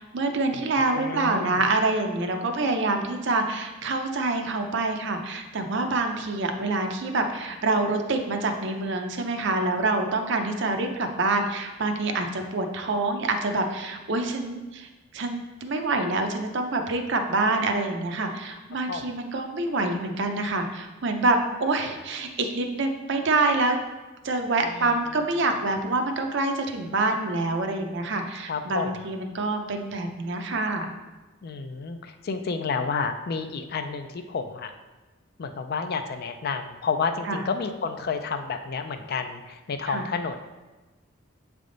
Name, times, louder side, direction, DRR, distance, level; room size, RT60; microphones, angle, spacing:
voice 1, 0.0-14.9 15.1-23.8 24.2-30.9 37.3-37.4 39.9-40.0, right 2 dB, 60° right, 5 dB, 0.6 m, -26 dB
voice 2, 0.5-1.6 6.3-6.5 18.9-19.0 24.7-25.0 28.5-28.9 31.4-34.7 35.4-40.4, left 5 dB, 50° left, 7 dB, 0.4 m, -30 dB
7.4 x 3.5 x 3.8 m, 1.2 s
head